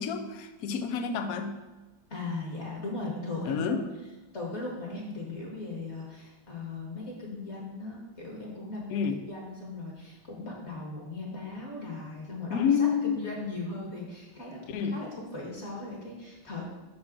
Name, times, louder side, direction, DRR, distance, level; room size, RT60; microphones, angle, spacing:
voice 1, 0.0-1.6 3.5-3.8 8.9-9.2 12.5-13.2 14.7-15.0, left 6 dB, 70° left, 7 dB, 0.8 m, -28 dB
voice 2, 2.1-3.8 4.3-16.6, left 2 dB, 35° left, -2 dB, 1.6 m, -38 dB
5.9 x 4.9 x 6.0 m, 1.1 s
omnidirectional pair, 2.1 m